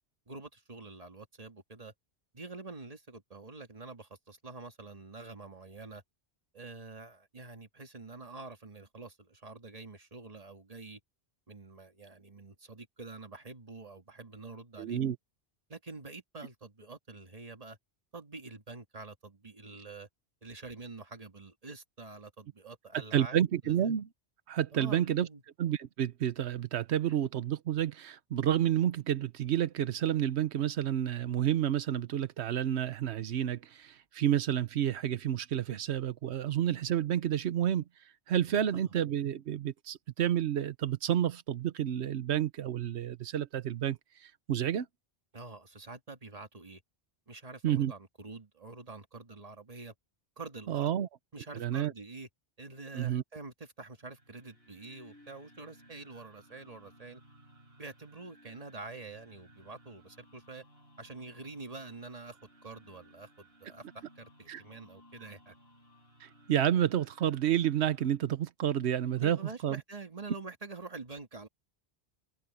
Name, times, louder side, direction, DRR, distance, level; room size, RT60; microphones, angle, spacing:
voice 1, 0.3-1.9 2.3-6.0 6.5-11.0 11.5-15.0 15.7-17.8 18.1-20.1 20.4-23.8 24.7-25.4 38.7-38.9 45.3-46.8 47.3-49.9 50.4-51.0 51.3-52.3 52.6-57.2 57.8-60.6 61.0-65.5 69.2-71.5, right 3 dB, 35° right, 1.9 m, -47 dB
voice 2, 14.8-15.2 23.1-24.1 24.5-25.3 25.6-37.8 38.3-44.9 47.6-47.9 50.7-51.1 51.5-51.9 52.9-53.2 64.5-64.6 66.2-69.8, right 10 dB, 90° right, 1.0 m, -30 dB
sound 1, 53.9-68.2, equal, 70° right, 5.8 m, -60 dB
omnidirectional pair, 1.1 m